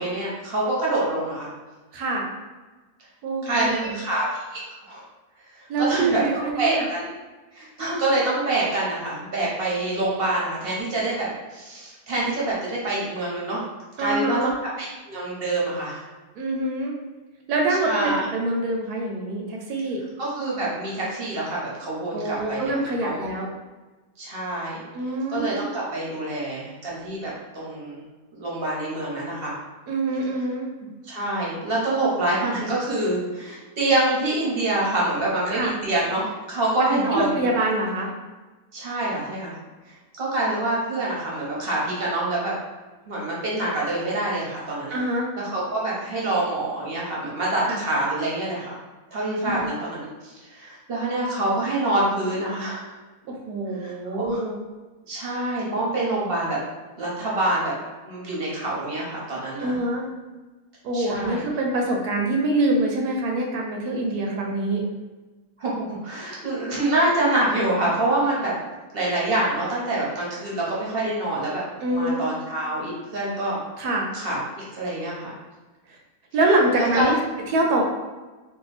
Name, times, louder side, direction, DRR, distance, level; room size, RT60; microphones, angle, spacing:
voice 1, 0.0-1.5 3.4-4.2 4.5-5.0 5.8-7.1 7.5-13.6 14.0-16.0 17.8-18.2 20.2-23.3 24.2-24.8 25.3-28.0 28.3-29.5 31.0-37.5 38.7-39.6 40.1-42.5 43.0-45.0 45.4-48.7 49.1-52.8 53.7-54.4 55.1-56.6 57.0-57.7 58.0-59.8 60.9-61.4 65.6-68.5 68.9-71.6 71.9-73.6 74.1-75.3 76.7-77.1, right 2 dB, 50° right, -5 dB, 0.8 m, -26 dB
voice 2, 1.9-2.3 3.2-4.0 5.7-6.9 14.0-14.5 16.4-16.9 17.5-20.0 22.1-23.5 24.9-25.7 29.9-30.7 35.5-35.7 36.9-38.1 44.9-45.3 47.7-47.8 49.4-49.7 53.3-54.6 59.6-60.1 60.8-64.8 71.8-72.2 73.8-74.1 75.9-76.0 76.3-77.2 77.5-77.8, right 2 dB, 80° right, 0 dB, 1.1 m, -25 dB
2.7 x 2.1 x 4.0 m, 1.2 s
omnidirectional pair, 1.6 m